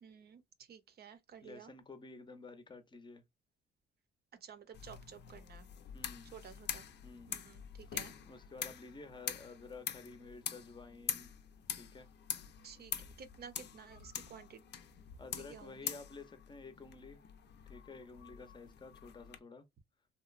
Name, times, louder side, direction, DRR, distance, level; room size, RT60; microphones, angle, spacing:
voice 1, 0.0-1.7 4.4-5.7 6.3-6.9 7.3-8.2 12.6-14.6 15.4-15.9, right 7 dB, 50° right, 0.7 m, -53 dB
voice 2, 1.4-3.2 5.9-6.3 7.0-7.4 8.3-11.3 11.8-12.1 15.2-17.2 17.7-19.7, left 3 dB, 25° left, 0.6 m, -51 dB
sound 1, 4.7-19.4, left 9 dB, 60° left, 0.6 m, -45 dB
2.8 x 2.1 x 2.4 m
cardioid pair, 90°, 20 cm